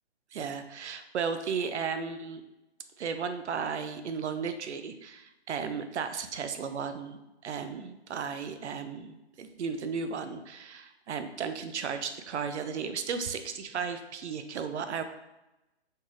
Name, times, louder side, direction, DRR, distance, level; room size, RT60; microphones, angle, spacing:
voice 1, 0.3-2.4 3.0-15.0, right 6 dB, 80° right, 9 dB, 0.5 m, -35 dB
4.5 x 2.4 x 3.1 m, 0.96 s
hypercardioid pair, 165°, 34 cm